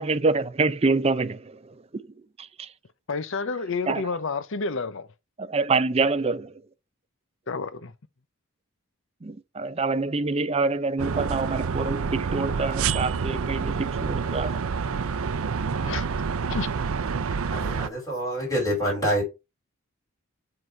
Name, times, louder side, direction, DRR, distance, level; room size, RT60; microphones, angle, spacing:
voice 1, 0.0-1.4 2.6-2.7 3.9-4.0 5.4-6.5 9.2-14.6, right 3 dB, 30° right, 0.5 m, -26 dB
voice 2, 3.1-5.1 7.5-7.9 15.9-16.1 16.5-16.7, left 4 dB, 60° left, 0.7 m, -29 dB
Metal Pole Hand slip sequence, 11.0-17.9, right 5 dB, 75° right, 0.5 m, -28 dB
voice 3, 17.3-19.2, equal, 15° left, 5.1 m, -27 dB
7.8 x 3.9 x 4.6 m
head